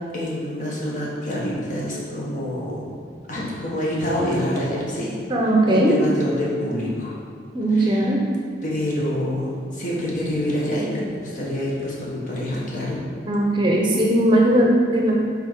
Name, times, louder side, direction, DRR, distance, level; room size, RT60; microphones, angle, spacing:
voice 1, 0.1-2.9 3.3-5.2 5.7-7.1 7.7-8.1 8.6-13.0, left 1 dB, 45° left, -5 dB, 1.3 m, -26 dB
voice 2, 5.3-5.9 7.5-8.2 13.3-15.2, right 1 dB, 25° right, -2 dB, 0.7 m, -18 dB
5.6 x 4.0 x 4.6 m, 2.3 s
head